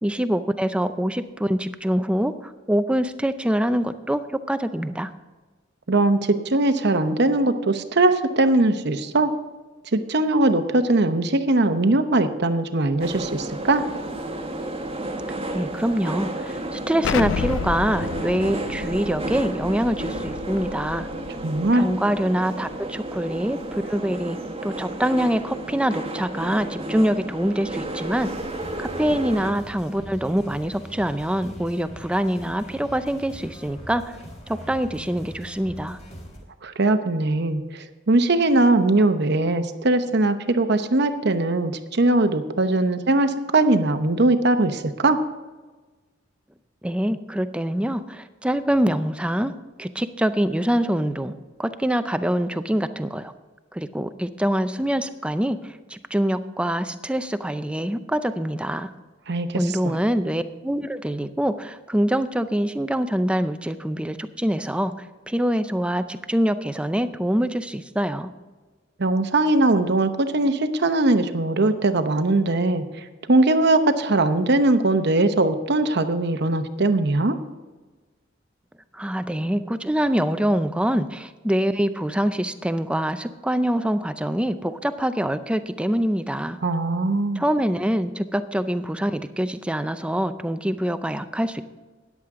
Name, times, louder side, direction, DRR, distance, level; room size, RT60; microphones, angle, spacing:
voice 1, 0.0-5.1 15.5-21.1 21.7-28.3 28.8-34.2 34.5-36.0 46.8-49.5 49.8-51.3 51.6-53.3 53.7-58.9 59.5-68.3 78.9-86.6 87.4-91.6, equal, 5° right, 10 dB, 0.5 m, -25 dB
voice 2, 5.9-9.3 9.9-13.8 21.4-21.9 36.6-45.2 59.3-59.6 69.0-77.4 86.6-87.4, right 2 dB, 55° right, 9 dB, 0.9 m, -20 dB
sound 1, 13.0-29.5, right 1 dB, 30° right, 1.2 m, -32 dB
Explosion, 17.0-21.7, left 6 dB, 75° left, 0.4 m, -31 dB
sound 2, 28.3-36.4, equal, 35° left, 3.9 m, -42 dB
13.5 x 10.5 x 3.7 m, 1.3 s
head